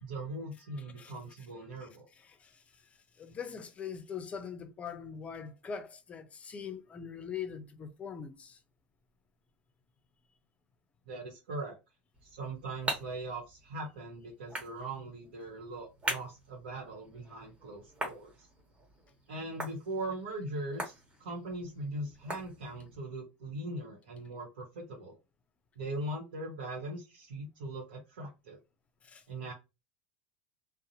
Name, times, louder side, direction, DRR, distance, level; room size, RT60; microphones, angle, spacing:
voice 1, 0.0-2.1 11.1-11.8 12.2-18.5 19.3-25.2 25.8-28.6 29.3-29.5, right 2 dB, 90° right, 0.9 m, -40 dB
voice 2, 0.7-1.5 1.8-8.6 29.0-29.2, left 7 dB, 25° left, 0.4 m, -43 dB
sound 1, 12.1-23.0, right 2 dB, 20° right, 1.0 m, -43 dB
2.6 x 2.0 x 2.8 m
supercardioid pair, 115°, 5 cm